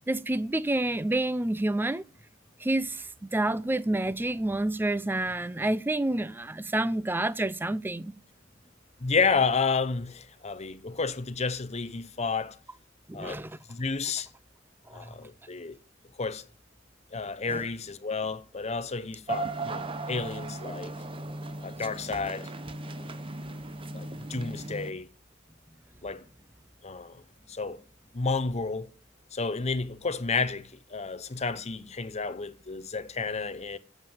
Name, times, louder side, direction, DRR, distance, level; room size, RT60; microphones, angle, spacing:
voice 1, 0.1-2.0 2.6-3.1 3.3-8.1 13.1-13.6 14.9-15.1 17.5-17.6, right 1 dB, 10° right, 0.4 m, -28 dB
voice 2, 9.0-12.6 13.1-13.4 13.7-14.3 14.9-15.8 16.2-16.5 17.1-20.9 21.6-22.5 23.9-25.1 26.0-26.2 26.8-27.2 27.5-27.8 28.1-28.9 29.3-33.8, left 4 dB, 35° left, 0.8 m, -31 dB
sound 1, 19.3-24.9, right 3 dB, 25° right, 0.8 m, -37 dB
9.1 x 7.2 x 8.9 m
head